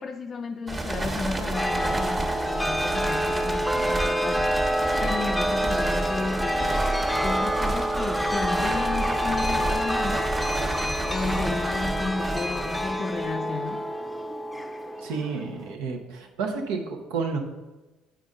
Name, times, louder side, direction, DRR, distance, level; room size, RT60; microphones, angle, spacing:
voice 1, 0.0-4.6 5.0-6.9 7.2-10.3 11.1-13.9, left 4 dB, 40° left, 0.4 m, -33 dB
sound 1, 0.7-13.5, right 2 dB, 25° right, 1.3 m, -31 dB
Chime, 1.5-15.7, equal, ahead, 0.7 m, -27 dB
voice 2, 15.0-17.4, right 4 dB, 75° right, 1.0 m, -30 dB
8.8 x 5.1 x 3.7 m
hypercardioid pair, 65°, 0 cm